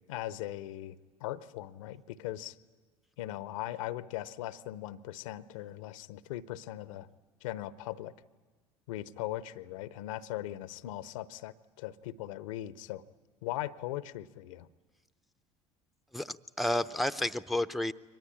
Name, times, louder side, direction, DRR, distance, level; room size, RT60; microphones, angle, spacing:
voice 1, 0.0-2.6 3.2-7.1 7.4-8.1 8.9-13.0 13.4-14.7, left 14 dB, 70° left, 17 dB, 0.8 m, -39 dB
voice 2, 16.1-17.9, left 1 dB, ahead, 12 dB, 0.7 m, -31 dB
23.5 x 19.5 x 9.9 m, 1.4 s
hypercardioid pair, 70°, 17 cm